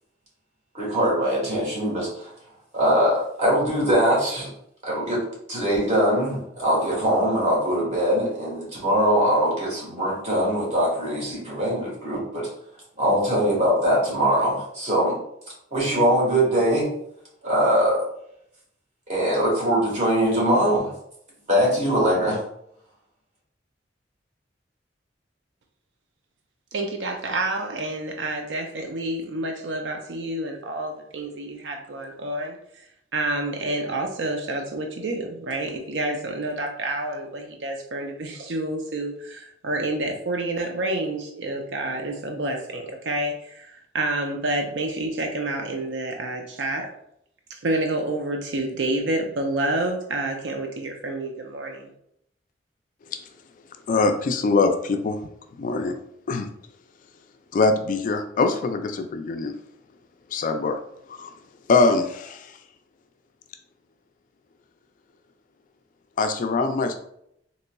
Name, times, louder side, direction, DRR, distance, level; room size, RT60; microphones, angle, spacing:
voice 1, 0.7-2.3 2.7-4.5 4.8-12.5 13.0-15.2 15.7-16.9 17.4-18.1 19.1-20.9 21.5-22.4, equal, 40° right, -4 dB, 1.5 m, -22 dB
voice 2, 26.7-32.6 33.1-46.9 47.5-51.9, right 2 dB, 75° right, 3 dB, 0.5 m, -28 dB
voice 3, 53.9-55.2 55.6-56.0 56.3-56.5 57.5-59.5 60.3-60.8 61.1-61.3 61.7-62.5 66.2-66.9, left 3 dB, 45° left, 8 dB, 0.3 m, -23 dB
3.8 x 3.0 x 2.2 m, 0.74 s
head